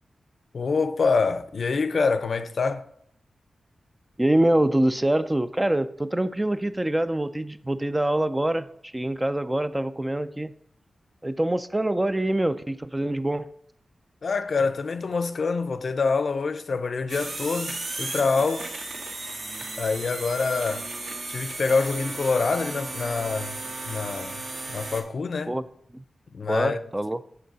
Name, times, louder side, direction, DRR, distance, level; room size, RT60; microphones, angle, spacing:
voice 1, 0.5-2.8 14.2-18.7 19.8-20.9 21.3-23.6 23.9-24.4 24.7-25.6 26.3-26.8, left 4 dB, 55° left, 0.5 m, -26 dB
voice 2, 4.2-10.5 11.2-13.5 25.5-25.6 25.9-26.0 26.5-27.2, right 1 dB, 15° right, 0.3 m, -25 dB
sound 1, 17.1-25.0, right 2 dB, 65° right, 1.9 m, -35 dB
7.8 x 4.1 x 6.6 m
wide cardioid pair, 115°, 0 cm